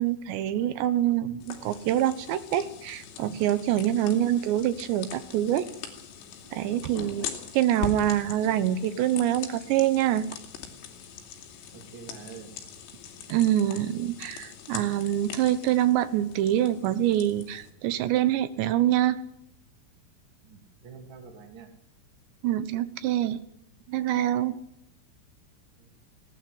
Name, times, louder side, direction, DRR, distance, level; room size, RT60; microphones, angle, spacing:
voice 1, 0.0-5.7 6.5-7.3 7.5-10.3 13.3-19.2 22.4-23.4 23.9-24.6, right 12 dB, 70° right, 13 dB, 2.9 m, -25 dB
sound 1, 1.4-17.7, left 7 dB, 90° left, 5.3 m, -42 dB
voice 2, 11.7-12.6 20.4-21.7 25.8-25.9, right 5 dB, 30° right, 4 dB, 2.7 m, -46 dB
20.0 x 18.0 x 9.7 m, 0.78 s
omnidirectional pair, 5.9 m